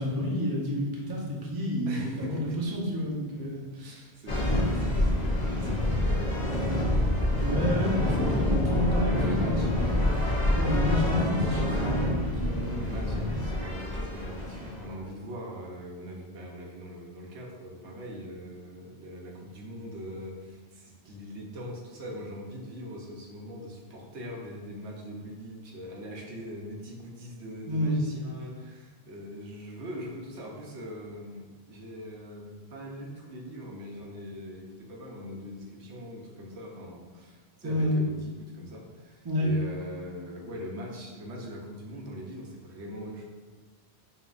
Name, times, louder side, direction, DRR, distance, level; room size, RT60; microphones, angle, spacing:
voice 1, 0.0-4.1 7.4-10.2 10.5-12.9 27.7-28.0 37.6-38.0 39.2-39.5, equal, 25° right, -3 dB, 0.6 m, -30 dB
voice 2, 1.9-2.7 3.8-7.0 9.0-9.7 12.7-43.2, equal, 90° right, -1 dB, 1.1 m, -41 dB
sound 1, 4.3-15.0, left 1 dB, 40° left, 0.9 m, -27 dB
5.3 x 3.0 x 2.4 m, 1.3 s
omnidirectional pair, 1.1 m